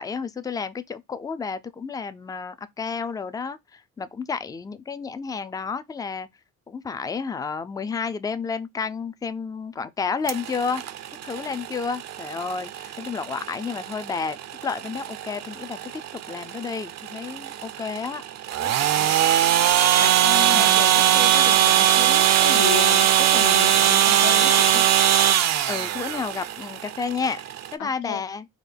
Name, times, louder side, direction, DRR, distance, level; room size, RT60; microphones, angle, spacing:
voice 1, 0.0-6.3 6.7-10.8 11.2-15.8 16.1-18.2 20.5-21.3 25.7-27.4 27.7-28.5, left 5 dB, 15° left, 0.3 m, -31 dB
sound 1, 10.3-27.7, right 10 dB, 60° right, 0.5 m, -21 dB
voice 2, 18.6-19.2 20.0-24.9 27.8-28.2, left 10 dB, 90° left, 0.7 m, -33 dB
3.7 x 2.1 x 3.3 m
cardioid pair, 90°, 30 cm